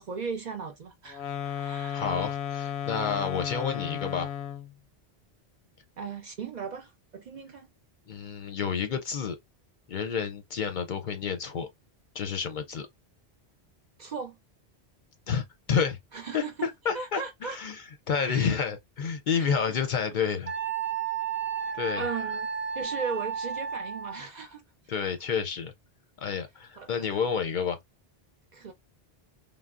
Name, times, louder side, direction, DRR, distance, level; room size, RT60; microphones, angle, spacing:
voice 1, 0.0-2.0 6.0-7.7 14.0-14.4 16.1-16.7 16.9-17.6 18.2-18.5 19.3-19.5 21.9-22.5 22.8-24.6 26.8-27.1 28.5-28.7, right 5 dB, 55° right, 0.6 m, -37 dB
sound 1, 1.1-4.7, left 9 dB, 90° left, 0.8 m, -34 dB
voice 2, 1.9-4.3 8.1-9.4 9.9-11.7 12.1-12.9 15.3-16.0 16.3-20.5 21.7-22.3 24.9-25.7 26.2-27.8, left 6 dB, 60° left, 0.6 m, -30 dB
Wind instrument woodwind instrument, 20.5-24.3, right 7 dB, 10° right, 0.9 m, -32 dB
3.4 x 2.0 x 2.3 m
omnidirectional pair, 1.0 m